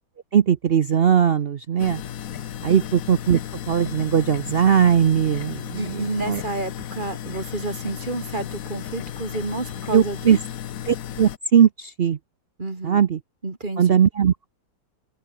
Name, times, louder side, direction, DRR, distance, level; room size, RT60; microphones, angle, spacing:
voice 1, 0.3-2.0 2.6-3.4 3.7-6.4 9.9-10.4 10.9-12.2 12.8-13.2 13.8-14.5, right 8 dB, 85° right, 0.5 m, -19 dB
sound 1, 1.8-11.4, left 10 dB, 55° left, 1.1 m, -34 dB
voice 2, 5.8-10.4 12.6-13.1 13.4-14.0, right 2 dB, 25° right, 2.4 m, -30 dB
omnidirectional pair, 2.1 m